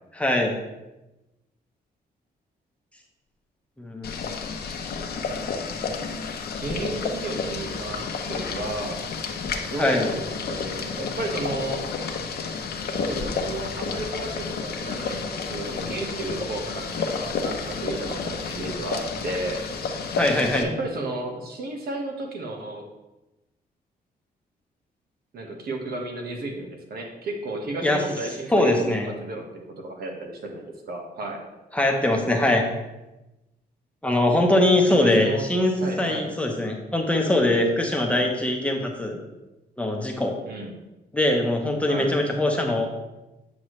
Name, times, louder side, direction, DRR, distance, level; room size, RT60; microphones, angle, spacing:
voice 1, 0.1-0.5 3.8-4.1 9.8-10.1 20.2-20.7 27.8-28.0 28.5-29.1 31.7-32.6 34.0-39.2 39.8-40.4 41.1-42.9, left 1 dB, 5° left, 0 dB, 0.9 m, -22 dB
Boiling, 4.0-20.6, left 5 dB, 70° left, 0.8 m, -31 dB
voice 2, 6.6-9.0 9.7-11.9 12.9-19.6 20.6-22.8 25.3-29.4 29.8-31.4 34.9-35.5 35.8-36.3 40.4-40.8 41.9-42.2, right 2 dB, 65° right, 2 dB, 1.4 m, -33 dB
8.6 x 6.2 x 3.2 m, 1.0 s
cardioid pair, 140°, 17 cm